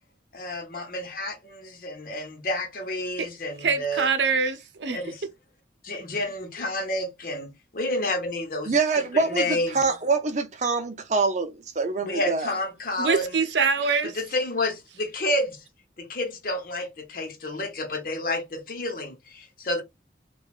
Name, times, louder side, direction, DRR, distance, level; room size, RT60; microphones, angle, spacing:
voice 1, 0.3-4.1 4.9-5.2 5.8-8.7 9.1-9.8 12.0-13.4 14.0-15.6 16.0-19.8, left 1 dB, 50° left, 0.8 m, -30 dB
voice 2, 3.6-5.0 13.0-14.1, right 5 dB, 80° right, 0.6 m, -24 dB
voice 3, 8.7-12.5, right 4 dB, 40° right, 0.6 m, -25 dB
3.9 x 2.3 x 2.4 m
head